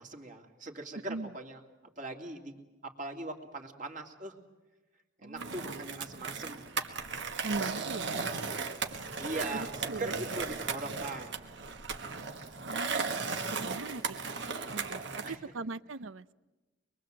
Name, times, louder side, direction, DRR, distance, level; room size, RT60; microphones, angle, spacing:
voice 1, 0.0-1.6 2.0-4.4 5.2-6.8 8.1-8.4 9.2-11.4 15.2-15.4, right 2 dB, 40° right, 2 dB, 2.7 m, -41 dB
voice 2, 5.2-6.0 7.4-8.1 9.5-10.2 12.7-14.2 14.7-16.3, right 3 dB, 80° right, 16 dB, 0.7 m, -40 dB
Skateboard, 5.4-15.4, right 5 dB, 65° right, 1.6 m, -36 dB
24.0 x 23.0 x 7.8 m, 1.2 s
head